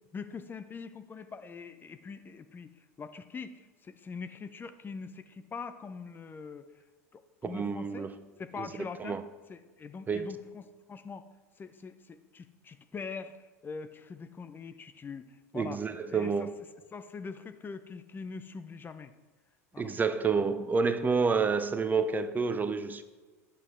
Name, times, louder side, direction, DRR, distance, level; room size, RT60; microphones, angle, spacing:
voice 1, 0.1-6.7 7.1-8.1 8.4-9.2 9.5-11.2 11.6-15.8 16.1-16.5 16.9-19.1 19.7-20.0, left 5 dB, 25° left, 11 dB, 0.6 m, -43 dB
voice 2, 7.4-8.1 8.6-8.7 9.0-9.2 10.1-10.3 15.5-16.5 19.8-23.0, right 5 dB, 20° right, 11 dB, 0.6 m, -29 dB
10.0 x 7.7 x 3.7 m, 1.3 s
hypercardioid pair, 85°, 8 cm